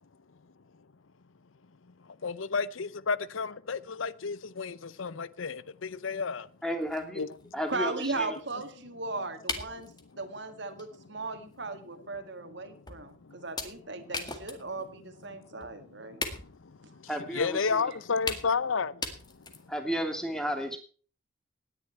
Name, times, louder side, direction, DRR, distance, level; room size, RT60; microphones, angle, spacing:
voice 1, 2.2-6.5 7.2-7.3 17.3-18.9, left 5 dB, 85° left, 0.7 m, -31 dB
sound 1, 6.4-6.5 6.8-8.7 9.5-10.1 10.8-11.0 11.3-11.5 12.1-12.2 12.9-13.1 13.6-14.9 15.2-15.3 15.6-15.8 16.2-16.7 17.7-17.8 18.3-18.7 19.0-19.8, left 3 dB, 20° left, 1.9 m, -38 dB
voice 2, 6.6-7.2 7.5-8.4 17.1-17.9 19.7-20.8, equal, 5° left, 2.7 m, -33 dB
voice 3, 7.7-16.2, right 3 dB, 60° right, 2.2 m, -37 dB
18.0 x 10.0 x 4.4 m
head